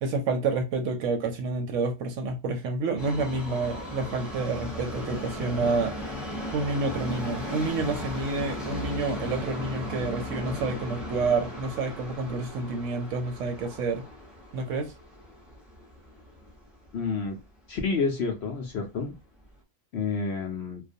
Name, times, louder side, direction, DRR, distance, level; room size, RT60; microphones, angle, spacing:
voice 1, 0.0-5.9 6.5-14.1 14.5-14.9, right 3 dB, 70° right, 0.8 m, -29 dB
Subway metro underground, 3.0-17.1 17.4-17.5 18.3-18.4 18.7-18.8 19.4-19.5, left 1 dB, ahead, 0.6 m, -37 dB
voice 2, 16.9-17.4 17.7-19.1 19.9-20.8, left 4 dB, 65° left, 0.7 m, -29 dB
2.4 x 2.2 x 2.5 m
omnidirectional pair, 1.5 m